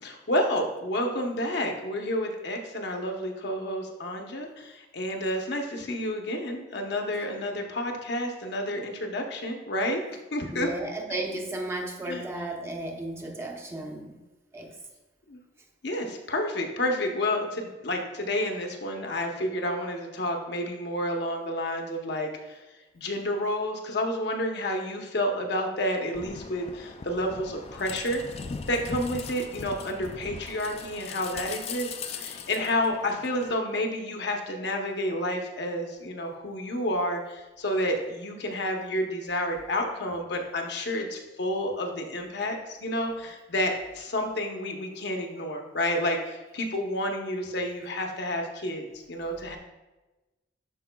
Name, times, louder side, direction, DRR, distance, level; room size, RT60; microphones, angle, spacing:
voice 1, 0.0-10.7 12.1-12.2 15.3-15.4 15.8-22.6 22.9-28.2 28.7-49.6, left 1 dB, 65° left, 3 dB, 0.9 m, -30 dB
voice 2, 10.5-14.2 14.5-14.7 43.6-43.7, right 1 dB, 15° right, 2 dB, 0.7 m, -34 dB
sound 1, 26.1-33.6, left 5 dB, 35° left, 0.3 m, -40 dB
12.0 x 4.7 x 2.3 m, 1.1 s
head